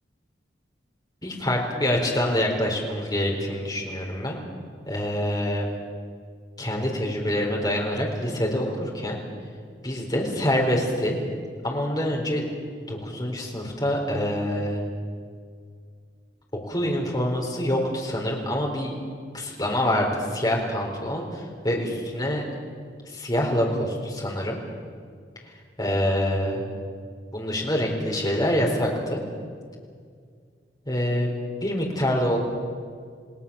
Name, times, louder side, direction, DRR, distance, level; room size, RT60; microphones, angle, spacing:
voice 1, 1.2-4.4 4.9-5.7 6.6-9.2 9.8-11.2 11.6-12.5 12.8-14.8 16.7-18.9 19.3-22.4 23.0-24.6 25.8-26.6 27.3-29.2 30.9-31.3 31.6-32.4, left 1 dB, 20° left, -1 dB, 4.3 m, -26 dB
28.5 x 18.5 x 7.1 m, 2.1 s
head